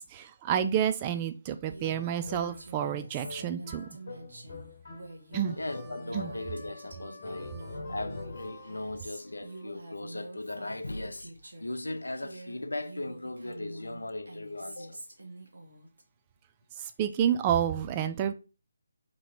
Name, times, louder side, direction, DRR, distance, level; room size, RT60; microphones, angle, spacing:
voice 1, 0.0-3.9 5.3-5.6 6.1-6.3 16.8-18.3, right 9 dB, 25° right, 0.4 m, -29 dB
Female speech woman speaking, 1.7-11.8 12.1-16.0, right 1 dB, 75° right, 1.2 m, -47 dB
sound 1, 1.8-6.8 7.2-8.7, left 3 dB, 50° left, 1.0 m, -45 dB
Harmonica, 5.4-9.7, left 3 dB, 20° left, 1.4 m, -52 dB
voice 2, 5.6-11.3 11.6-15.0, left 2 dB, 80° left, 0.5 m, -38 dB
3.0 x 2.9 x 4.0 m
figure-of-eight pair, 150°, 0 cm